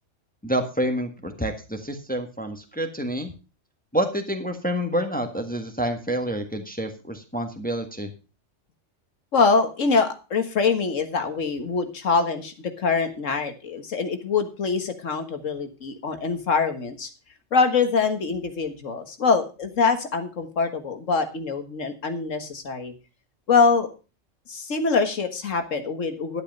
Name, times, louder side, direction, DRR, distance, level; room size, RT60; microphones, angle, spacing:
voice 1, 0.4-3.3 3.9-8.1, equal, 5° left, 4 dB, 1.4 m, -28 dB
voice 2, 9.3-17.1 17.5-22.9 23.5-23.9 24.5-26.4, left 4 dB, 85° left, 8 dB, 1.9 m, -24 dB
12.0 x 8.4 x 5.3 m, 0.32 s
omnidirectional pair, 1.3 m